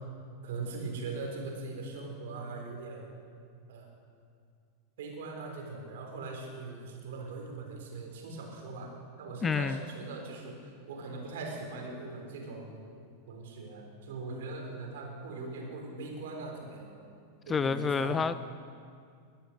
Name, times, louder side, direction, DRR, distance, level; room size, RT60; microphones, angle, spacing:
voice 1, 0.4-3.1 3.7-3.9 5.0-8.9 9.2-10.6 10.9-12.9 13.3-17.0 17.5-18.2, right 3 dB, 55° right, 1 dB, 3.8 m, -40 dB
voice 2, 9.4-9.8 17.5-18.3, left 5 dB, 20° left, 14 dB, 0.4 m, -28 dB
21.5 x 10.0 x 6.6 m, 2.3 s
figure-of-eight pair, 90°, 0 cm